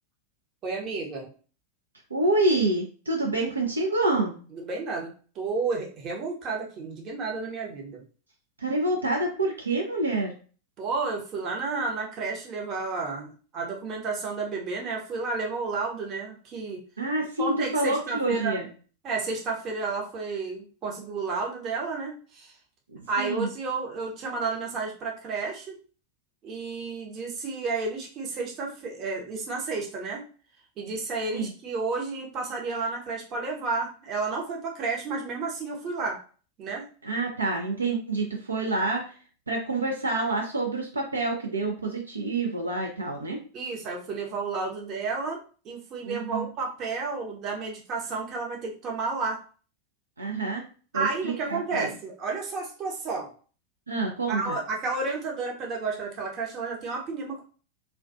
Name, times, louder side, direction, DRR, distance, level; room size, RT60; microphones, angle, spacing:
voice 1, 0.6-1.3 4.5-8.0 10.8-16.8 17.4-18.6 19.0-22.5 23.1-25.8 26.4-30.2 30.8-36.2 36.6-36.8 43.5-45.4 45.6-49.4 50.9-53.3 54.3-57.4, right 4 dB, 30° right, -1 dB, 0.7 m, -31 dB
voice 2, 2.1-4.4 8.6-10.3 17.0-18.7 22.9-23.5 31.3-31.5 37.0-39.0 39.5-43.4 46.0-46.4 50.2-50.6 50.9-51.9 53.9-54.6, right 2 dB, 75° right, 0 dB, 0.5 m, -27 dB
2.4 x 2.1 x 2.6 m, 0.39 s
figure-of-eight pair, 90°, 0 cm